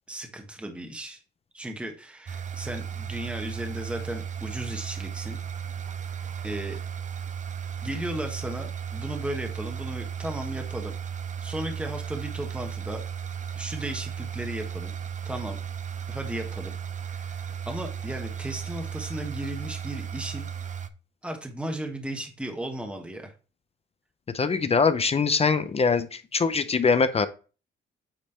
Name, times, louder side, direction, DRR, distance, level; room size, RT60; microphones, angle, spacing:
voice 1, 0.1-1.2 1.5-5.4 6.4-6.8 7.8-10.9 11.4-13.0 13.5-14.9 15.2-15.6 16.1-16.8 17.1-20.5 21.2-23.3, right 1 dB, 5° right, 3 dB, 1.2 m, -35 dB
sound 1, 2.3-20.9, right 8 dB, 40° right, 0.6 m, -35 dB
voice 2, 24.3-27.3, left 5 dB, 30° left, 11 dB, 0.6 m, -23 dB
8.8 x 3.2 x 4.3 m, 0.34 s
cardioid pair, 90°, 20 cm